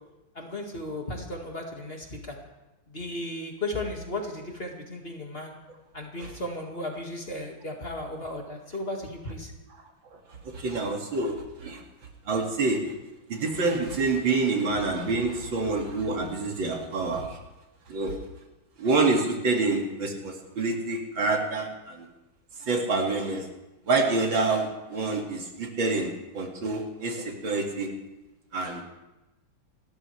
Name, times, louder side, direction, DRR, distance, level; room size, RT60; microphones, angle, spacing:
voice 1, 0.3-2.4 2.9-5.6 5.9-9.5, left 1 dB, 30° left, 1 dB, 2.0 m, -35 dB
voice 2, 10.5-11.3 11.6-11.8 12.3-12.8 13.3-17.3 17.9-18.1 18.8-22.1 22.6-23.4 23.9-27.9 28.5-28.8, right 3 dB, 75° right, 1 dB, 2.8 m, -27 dB
28.0 x 13.0 x 3.3 m, 1.0 s
omnidirectional pair, 2.2 m